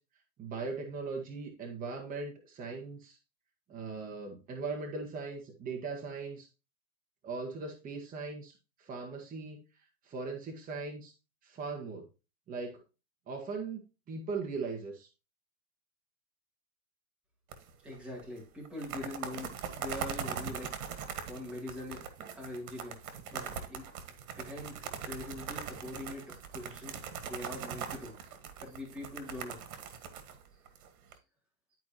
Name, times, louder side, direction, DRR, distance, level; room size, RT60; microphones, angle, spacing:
voice 1, 0.4-3.2 3.7-6.5 7.2-8.5 8.8-9.6 10.0-11.1 11.4-12.0 12.5-12.7 13.3-13.8 14.1-15.1, right 4 dB, 20° right, 1 dB, 1.5 m, -39 dB
sound 1, 17.5-17.9 18.2-18.3 18.6-31.1, right 7 dB, 75° right, 1.7 m, -41 dB
voice 2, 17.8-19.5 19.8-22.0 22.3-23.0 23.3-23.9 24.4-27.0 27.2-28.3 28.6-29.6, left 2 dB, 5° right, -3 dB, 2.6 m, -43 dB
12.0 x 4.7 x 2.9 m, 0.30 s
supercardioid pair, 135°, 43 cm